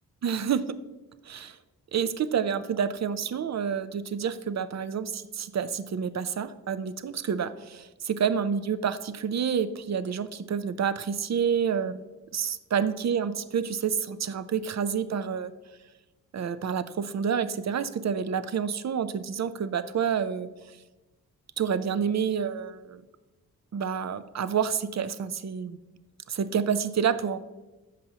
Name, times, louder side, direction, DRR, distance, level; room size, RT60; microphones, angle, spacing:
voice 1, 0.2-0.6 1.2-1.6 1.9-12.0 12.3-15.5 16.3-20.5 21.6-23.0 23.7-25.8 26.3-27.4, right 7 dB, 45° right, 13 dB, 0.6 m, -28 dB
13.5 x 5.5 x 2.9 m, 1.1 s
cardioid pair, 55°, 38 cm